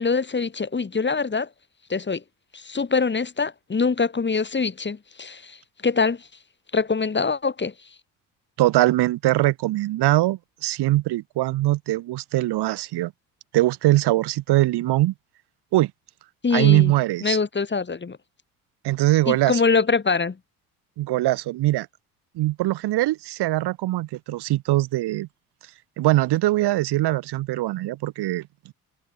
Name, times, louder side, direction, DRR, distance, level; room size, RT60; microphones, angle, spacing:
voice 1, 0.0-1.5 1.9-2.2 2.5-6.3 6.7-7.7 16.4-16.9 17.2-18.2 19.3-20.4, left 4 dB, 25° left, 2.5 m, -24 dB
voice 2, 8.6-13.1 13.5-15.1 15.7-15.9 16.5-17.4 18.8-19.6 21.0-21.9 22.3-25.3 26.0-28.7, right 16 dB, 60° right, 3.0 m, -22 dB
figure-of-eight pair, 50°, 45 cm